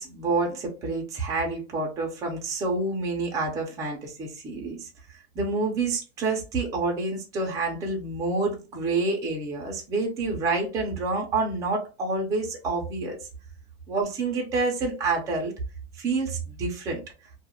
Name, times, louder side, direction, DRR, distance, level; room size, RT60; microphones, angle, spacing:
voice 1, 0.0-4.9 5.3-13.2 13.9-15.5 16.0-17.0, right 3 dB, 10° right, 0.4 m, -28 dB
2.3 x 2.1 x 2.8 m
supercardioid pair, 145°, 32 cm